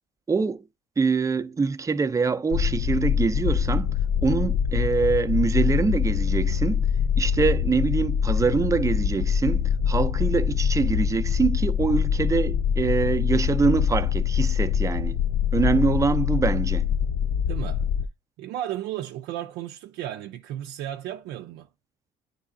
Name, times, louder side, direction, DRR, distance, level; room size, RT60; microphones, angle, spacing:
voice 1, 0.3-0.6 1.0-3.9 4.2-6.9 7.2-15.2 15.5-16.9, right 4 dB, 20° right, 0.5 m, -24 dB
sound 1, 2.5-18.1, left 8 dB, 55° left, 0.4 m, -24 dB
voice 2, 17.5-17.9 18.4-21.7, right 12 dB, 85° right, 0.5 m, -34 dB
9.6 x 3.4 x 3.6 m
cardioid pair, 110°, 17 cm